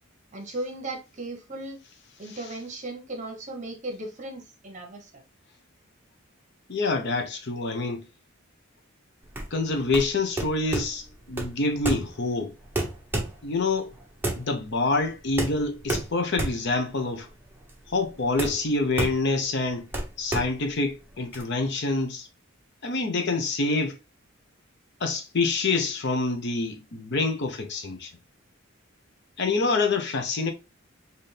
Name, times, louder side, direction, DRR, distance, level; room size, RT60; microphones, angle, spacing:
voice 1, 0.3-1.8 2.2-5.2, right 2 dB, 35° right, 1.0 m, -36 dB
voice 2, 6.7-8.1 9.5-12.5 13.4-13.9 14.4-17.3 17.9-19.9 20.2-22.3 22.8-24.0 25.0-28.1 29.4-30.5, left 3 dB, 55° left, 0.7 m, -26 dB
sound 1, 9.2-21.4, right 2 dB, 10° right, 0.9 m, -32 dB
4.2 x 2.6 x 3.3 m
head